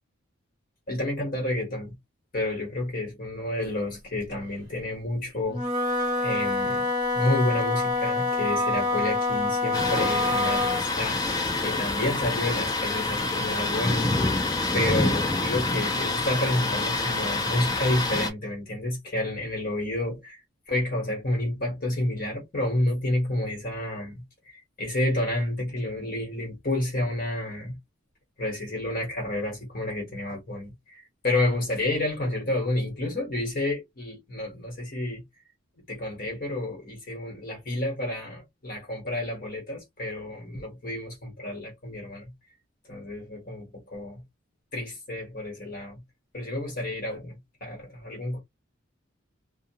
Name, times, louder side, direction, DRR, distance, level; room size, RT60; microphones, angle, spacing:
voice 1, 0.9-2.0 2.3-5.7 6.2-6.9 7.1-14.4 14.7-27.8 28.4-35.2 35.9-42.3 42.9-44.2 44.7-46.0 46.3-48.4, left 1 dB, 45° left, 1.3 m, -30 dB
Wind instrument woodwind instrument, 5.5-10.9, left 2 dB, 20° right, 1.1 m, -26 dB
Thunder, 9.7-18.3, left 2 dB, 20° left, 0.4 m, -27 dB
2.4 x 2.3 x 2.8 m
head